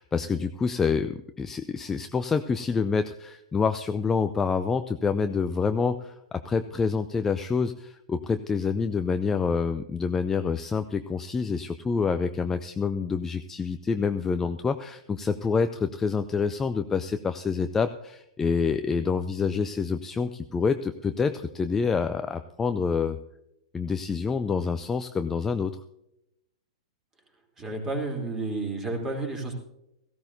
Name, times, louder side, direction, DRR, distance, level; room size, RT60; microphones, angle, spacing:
voice 1, 0.0-23.2 23.7-25.8, left 5 dB, 10° left, 9 dB, 0.5 m, -27 dB
voice 2, 27.6-29.5, right 2 dB, 15° right, 2 dB, 3.2 m, -31 dB
17.5 x 15.5 x 2.7 m, 0.83 s
figure-of-eight pair, 105°, 3 cm